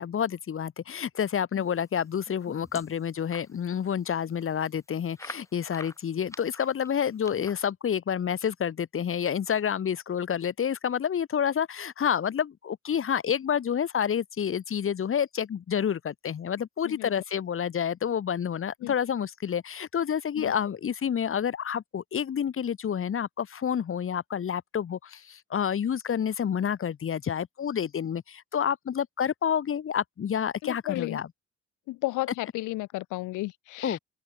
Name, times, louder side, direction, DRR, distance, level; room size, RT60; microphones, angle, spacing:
voice 1, 0.0-31.3 33.8-34.0, left 8 dB, 45° left, 1.4 m, -29 dB
sound 1, 2.0-3.5 4.0-4.1 4.3-4.4 5.2-7.7, left 1 dB, 10° left, 6.8 m, -46 dB
voice 2, 30.6-31.2 31.9-34.0, left 19 dB, 80° left, 0.5 m, -33 dB
open air
cardioid pair, 90°, 30 cm